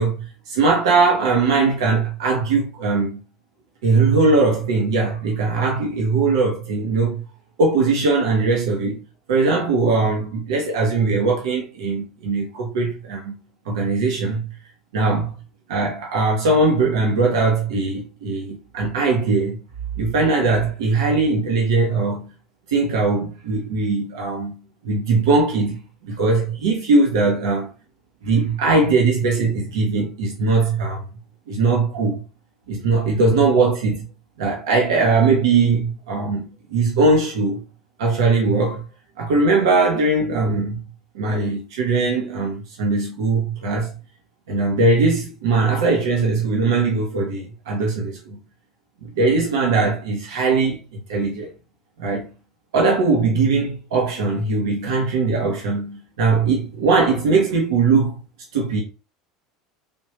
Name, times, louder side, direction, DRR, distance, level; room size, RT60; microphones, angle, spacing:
voice 1, 0.0-3.2 3.8-7.2 7.6-9.0 9.3-13.4 13.7-14.5 14.9-15.3 15.7-19.6 20.0-22.3 22.7-27.7 28.2-31.0 31.5-32.2 32.7-34.1 34.4-37.6 38.0-38.9 39.2-40.8 41.1-43.9 44.5-48.4 49.0-51.5 52.0-52.3 52.7-58.1 58.5-58.8, right 3 dB, 65° right, 0.8 m, -20 dB
3.6 x 2.6 x 3.0 m
figure-of-eight pair, 75°, 3 cm